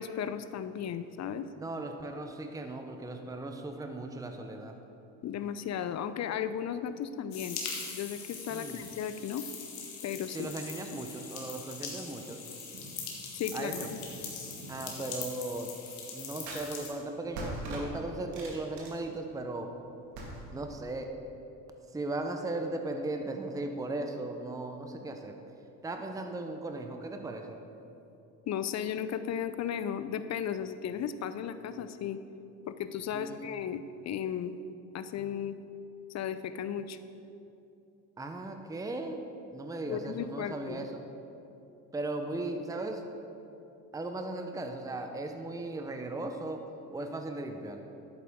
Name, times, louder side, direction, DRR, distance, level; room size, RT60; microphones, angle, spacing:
voice 1, 0.0-1.5 5.2-7.6 7.9-9.5 10.0-10.5 10.9-11.1 13.3-14.0 28.5-32.2 32.6-34.5 34.9-35.6 36.1-37.0 39.9-40.9, left 8 dB, 40° left, 12 dB, 0.6 m, -35 dB
voice 2, 1.6-4.8 8.5-8.8 10.3-12.4 13.5-13.9 14.7-15.7 16.1-19.7 20.5-21.0 21.9-25.4 25.8-27.6 33.1-33.6 38.2-39.2 39.5-41.0 41.9-43.1 43.9-46.6 46.9-47.8, right 2 dB, 10° right, 5 dB, 0.7 m, -37 dB
sound 1, 7.3-16.9, left 5 dB, 90° left, 1.8 m, -42 dB
sound 2, 12.7-13.1 13.5-15.0 16.5-16.6 17.3-19.5 20.1-20.6, right 1 dB, 80° right, 2.2 m, -43 dB
11.0 x 8.4 x 3.7 m, 2.8 s
supercardioid pair, 75°, 43 cm